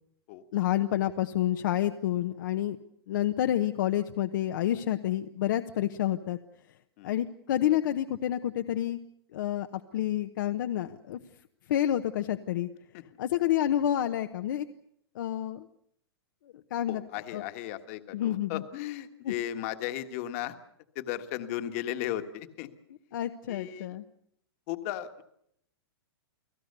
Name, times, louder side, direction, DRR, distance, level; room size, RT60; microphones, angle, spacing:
voice 1, 0.5-2.8 3.1-6.4 7.0-9.0 9.3-9.7 9.9-11.2 11.7-12.7 13.2-14.6 15.1-15.7 16.7-17.0 17.3-17.4 18.1-18.6 19.2-19.3 23.1-24.0, left 12 dB, 50° left, 7 dB, 1.0 m, -28 dB
voice 2, 16.9-20.5 20.9-22.7 23.5-24.0 24.7-25.2, left 12 dB, 35° left, 9 dB, 1.6 m, -35 dB
29.5 x 18.5 x 6.8 m, 0.73 s
hypercardioid pair, 165°, 13 cm